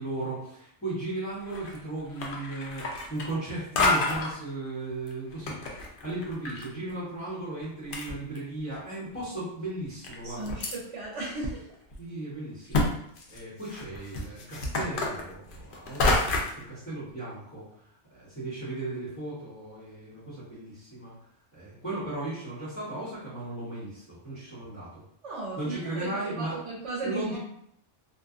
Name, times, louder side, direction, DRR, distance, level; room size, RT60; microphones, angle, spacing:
voice 1, 0.0-10.6 12.0-12.8 13.3-17.7 18.1-21.1 21.5-25.0 25.6-26.5 27.0-27.4, right 2 dB, 10° left, -13 dB, 1.1 m, -36 dB
sound 1, 1.4-1.8 2.1-3.5 3.8-4.3 5.1-6.7 6.9-7.0 7.6-7.7 7.9-8.7 9.3-9.4 10.0-10.8 11.4-11.5 11.9-12.0 12.7-12.9 13.2-16.6, left 2 dB, 60° left, 0.6 m, -28 dB
voice 2, 10.2-11.7 25.2-27.4, right 3 dB, 85° right, -5 dB, 1.1 m, -36 dB
2.6 x 2.4 x 2.4 m, 0.70 s
omnidirectional pair, 1.2 m